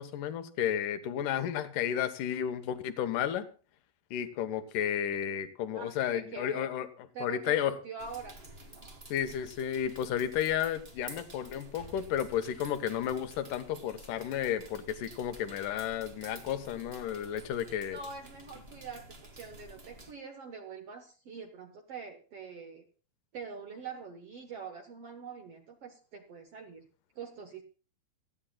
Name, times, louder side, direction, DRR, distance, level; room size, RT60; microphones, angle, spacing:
voice 1, 0.0-3.5 4.1-6.9 7.2-7.7 9.1-18.0, left 10 dB, 65° left, 10 dB, 2.6 m, -32 dB
voice 2, 5.7-6.7 7.1-8.4 17.9-22.9 23.3-26.9 27.2-27.6, right 5 dB, 60° right, 5 dB, 1.6 m, -44 dB
sound 1, 8.0-20.1, right 1 dB, 30° right, 1.1 m, -51 dB
26.5 x 9.6 x 2.3 m, 0.37 s
omnidirectional pair, 4.3 m